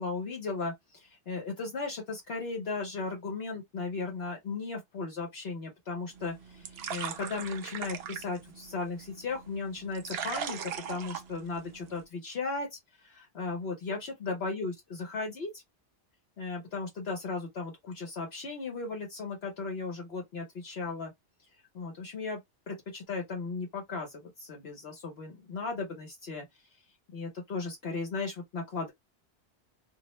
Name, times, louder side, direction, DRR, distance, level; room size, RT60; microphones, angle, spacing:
voice 1, 0.0-15.6 16.4-21.1 21.7-22.4 22.7-26.5 27.1-28.9, left 4 dB, 65° left, 1.1 m, -36 dB
sound 1, 6.1-12.1, right 8 dB, 65° right, 0.8 m, -40 dB
2.6 x 2.0 x 2.9 m
omnidirectional pair, 1.2 m